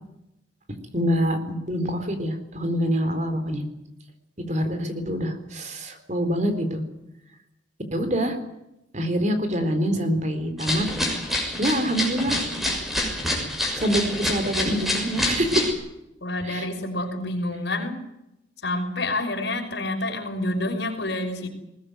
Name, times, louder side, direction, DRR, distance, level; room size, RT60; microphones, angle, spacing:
voice 1, 0.9-3.6 4.5-6.8 7.9-8.4 8.9-10.9 11.6-12.5 13.8-15.7 16.5-16.7, equal, 40° right, 9 dB, 4.1 m, -25 dB
sound 1, 10.6-15.7, left 1 dB, ahead, 6.4 m, -27 dB
voice 2, 16.2-18.0 18.6-21.5, left 2 dB, 65° left, 5 dB, 5.8 m, -28 dB
22.0 x 19.5 x 9.4 m, 0.88 s
head